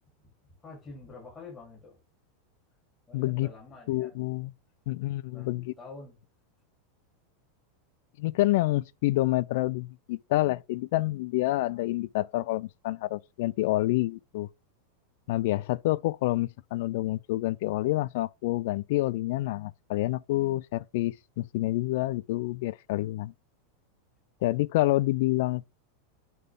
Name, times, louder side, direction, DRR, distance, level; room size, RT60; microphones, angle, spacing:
voice 1, 0.6-2.0 3.1-4.2 5.3-6.2, left 3 dB, 20° left, 3.6 m, -47 dB
voice 2, 3.1-3.5 3.9-4.5 4.9-5.7 8.2-14.5 15.3-23.3 24.4-25.7, left 17 dB, 65° left, 0.3 m, -28 dB
9.2 x 3.8 x 3.8 m
supercardioid pair, 140°, 0 cm